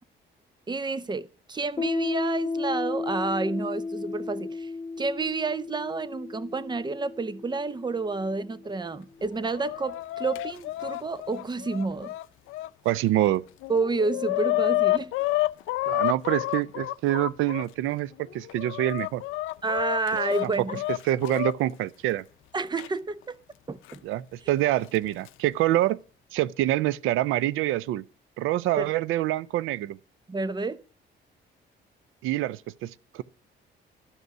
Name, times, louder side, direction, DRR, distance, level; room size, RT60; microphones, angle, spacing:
voice 1, 0.7-4.7 5.0-12.1 13.7-15.1 19.6-20.8 22.5-23.4 23.7-24.0 28.8-28.9 30.3-30.8, right 3 dB, 20° right, 0.8 m, -30 dB
Piano, 1.8-9.0, left 3 dB, 25° left, 0.4 m, -34 dB
Chicken rooster, 9.2-12.7 13.3-13.4 13.6-17.7 18.3-21.5 22.8-22.9 23.9-24.0 25.0-25.3, left 17 dB, 90° left, 0.5 m, -29 dB
voice 2, 12.8-13.4 15.9-19.2 21.1-22.2 24.0-26.0 26.3-28.0 28.4-30.0 32.2-33.2, right 14 dB, 90° right, 0.4 m, -26 dB
12.5 x 5.4 x 7.9 m
cardioid pair, 90°, 20 cm